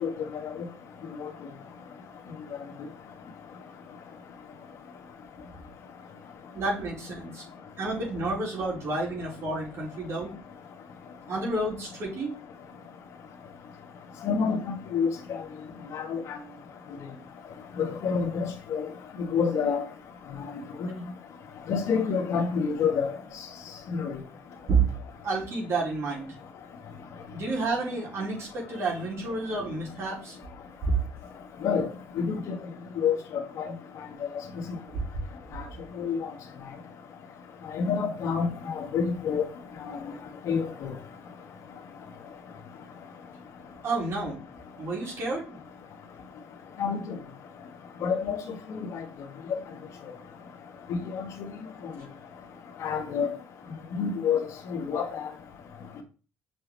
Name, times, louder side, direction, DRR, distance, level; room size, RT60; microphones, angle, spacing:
voice 1, 0.0-0.5 1.2-1.3 14.2-15.4 15.9-16.2 17.7-18.8 19.3-19.8 20.8-20.9 21.7-23.1 23.9-24.2 31.6-31.9 32.2-32.6 33.0-33.7 36.0-36.2 37.7-39.4 40.4-40.9 46.8-47.0 48.0-48.4 48.7-49.0 49.5-49.6 51.1-51.2 52.8-53.3 54.0-55.3, left 6 dB, 65° left, 1.7 m, -28 dB
voice 2, 6.5-7.5 7.8-10.3 11.3-12.4 24.7-24.8 25.2-26.3 27.3-30.4 30.8-30.9 43.8-44.4 44.8-45.6, right 3 dB, 55° right, 4.5 m, -30 dB
6.3 x 5.6 x 4.1 m
supercardioid pair, 80°, 6 cm